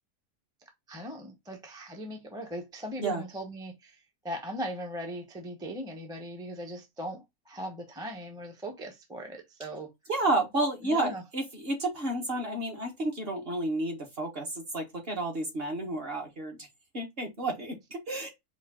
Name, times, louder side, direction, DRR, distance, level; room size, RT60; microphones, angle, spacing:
voice 1, 0.9-9.9 10.8-11.2, equal, 5° right, 0.7 m, -39 dB
voice 2, 10.1-16.7 16.9-18.3, right 2 dB, 40° right, 1.4 m, -31 dB
4.9 x 2.6 x 3.6 m
omnidirectional pair, 1.6 m